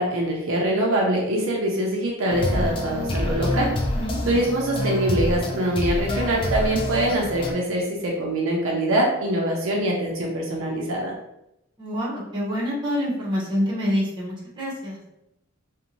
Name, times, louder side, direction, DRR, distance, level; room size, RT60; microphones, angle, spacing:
voice 1, 0.0-3.7 4.3-11.1, right 1 dB, 65° right, -1 dB, 0.5 m, -24 dB
sound 1, 2.3-7.5, left 1 dB, 25° left, 0.3 m, -27 dB
voice 2, 3.9-4.4 11.8-15.0, equal, 20° right, -5 dB, 0.7 m, -27 dB
2.6 x 2.1 x 2.8 m, 0.85 s
head